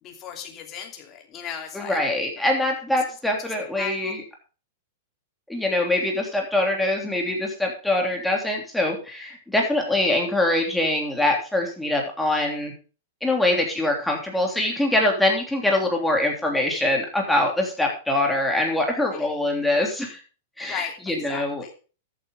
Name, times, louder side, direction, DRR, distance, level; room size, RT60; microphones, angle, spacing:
voice 1, 0.0-2.0 3.8-4.2 19.1-19.3 20.7-21.7, left 8 dB, 30° left, 3 dB, 2.9 m, -36 dB
voice 2, 1.7-4.2 5.5-12.7 13.2-20.2 20.6-21.6, left 1 dB, 5° left, 0 dB, 3.2 m, -23 dB
13.5 x 9.1 x 3.8 m, 0.35 s
hypercardioid pair, 145°, 0 cm